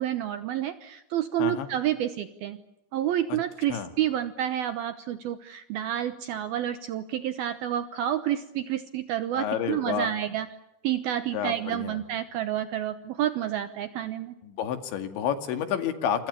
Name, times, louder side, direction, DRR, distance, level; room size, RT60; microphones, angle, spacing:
voice 1, 0.0-2.6 2.9-10.5 10.8-14.3, right 11 dB, 70° right, 11 dB, 2.4 m, -29 dB
voice 2, 9.3-10.1 11.3-12.0 14.4-16.3, left 8 dB, 70° left, 8 dB, 4.4 m, -30 dB
29.5 x 27.0 x 6.9 m, 0.89 s
omnidirectional pair, 5.5 m